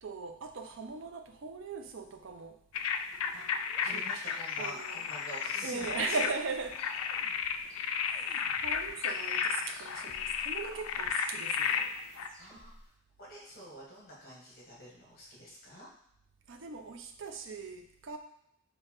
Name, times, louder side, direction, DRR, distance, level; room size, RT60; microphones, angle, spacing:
voice 1, 0.0-2.6 3.9-4.0 4.6-5.0 5.6-6.8 8.1-11.9 16.5-18.2, right 4 dB, 65° right, 5 dB, 0.5 m, -39 dB
sound 1, 2.7-12.3, left 7 dB, 80° left, 0.4 m, -33 dB
sound 2, 3.1-12.9, equal, 5° left, 0.8 m, -56 dB
voice 2, 3.8-6.2 12.4-12.9 13.2-15.9, equal, 45° left, -3 dB, 1.3 m, -47 dB
5.0 x 2.3 x 4.3 m, 0.74 s
head